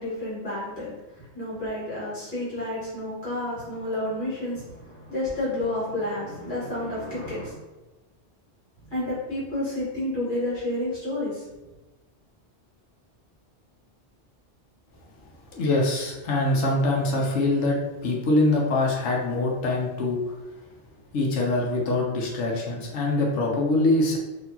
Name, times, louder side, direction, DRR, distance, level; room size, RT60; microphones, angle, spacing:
voice 1, 0.0-7.5 8.9-11.5, left 1 dB, 45° left, -9 dB, 1.6 m, -30 dB
voice 2, 15.5-20.4 21.1-24.2, left 2 dB, 85° left, -2 dB, 1.1 m, -24 dB
4.4 x 2.8 x 2.7 m, 1.1 s
omnidirectional pair, 1.2 m